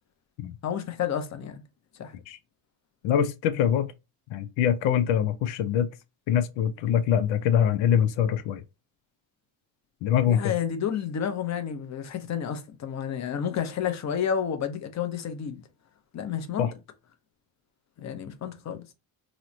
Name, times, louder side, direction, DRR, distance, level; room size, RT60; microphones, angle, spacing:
voice 1, 0.6-1.6 2.0-2.1 10.3-15.6 16.1-16.7 18.0-18.8, left 8 dB, 40° left, 0.7 m, -30 dB
voice 2, 3.0-3.9 4.3-5.9 6.3-8.6 10.0-10.5 16.6-16.7, left 9 dB, 90° left, 0.6 m, -24 dB
3.1 x 2.0 x 3.8 m
cardioid pair, 90°, 44 cm